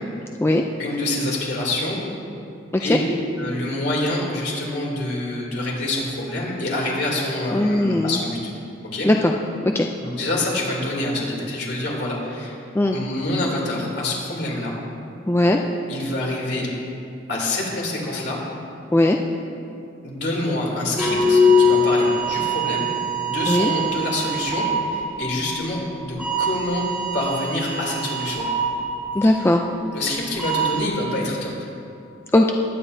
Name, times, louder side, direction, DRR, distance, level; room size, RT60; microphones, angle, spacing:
voice 1, 0.8-2.0 2.8-3.0 3.4-8.4 8.9-9.1 10.0-12.6 12.9-14.7 15.9-16.7 17.3-18.4 20.0-26.9 27.1-28.5 29.9-31.7, left 1 dB, 60° left, -3 dB, 2.9 m, -26 dB
voice 2, 7.5-8.2 9.0-9.3 9.6-9.9 12.7-13.0 15.3-15.6 18.9-19.2 23.5-23.7 29.1-29.6 32.3-32.5, left 1 dB, 10° left, 2 dB, 0.3 m, -18 dB
sound 1, 21.0-30.1 30.3-30.8, left 1 dB, 5° right, 1.7 m, -23 dB
20.5 x 9.7 x 2.7 m, 2.6 s
head